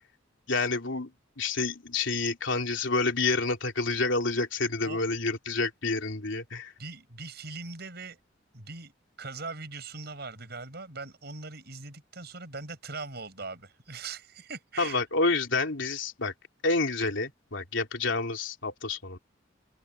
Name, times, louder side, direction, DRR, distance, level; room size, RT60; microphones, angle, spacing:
voice 1, 0.5-1.1 1.4-6.7 14.8-16.3 16.6-19.2, left 3 dB, 75° left, 3.4 m, -28 dB
voice 2, 6.8-8.2 8.5-8.9 9.2-15.0, right 3 dB, 55° right, 6.8 m, -41 dB
open air
head